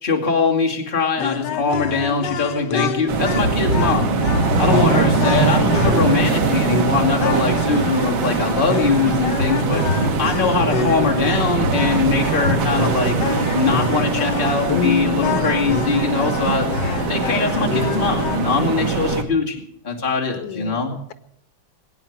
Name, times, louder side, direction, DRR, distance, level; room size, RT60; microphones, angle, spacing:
voice 1, 0.0-4.1 4.6-9.8 10.2-13.2 13.5-16.7 17.1-20.9, left 4 dB, 25° left, 0 dB, 2.4 m, -22 dB
sound 1, 1.2-18.4, left 7 dB, 70° left, 1.4 m, -27 dB
sound 2, 3.1-19.2, right 4 dB, 90° right, 2.1 m, -21 dB
voice 2, 10.4-10.7 16.7-17.3 20.4-21.1, left 10 dB, 85° left, 12 dB, 1.7 m, -35 dB
21.5 x 9.1 x 7.2 m, 0.71 s
omnidirectional pair, 2.1 m